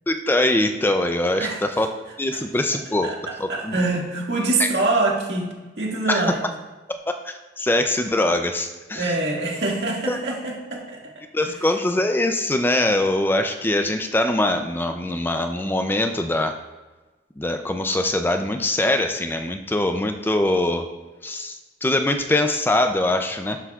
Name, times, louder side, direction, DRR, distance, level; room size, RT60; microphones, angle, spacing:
voice 1, 0.1-1.9 2.2-3.1 3.4-3.8 4.6-4.7 6.1-6.4 7.2-9.1 10.1-10.2 11.3-16.6 17.4-20.9 21.2-21.5 21.8-23.6, left 1 dB, 10° left, 6 dB, 0.4 m, -22 dB
voice 2, 3.5-6.4 8.9-11.1 11.4-11.5, right 2 dB, 70° right, -2 dB, 2.0 m, -25 dB
12.0 x 7.8 x 2.4 m, 1.2 s
head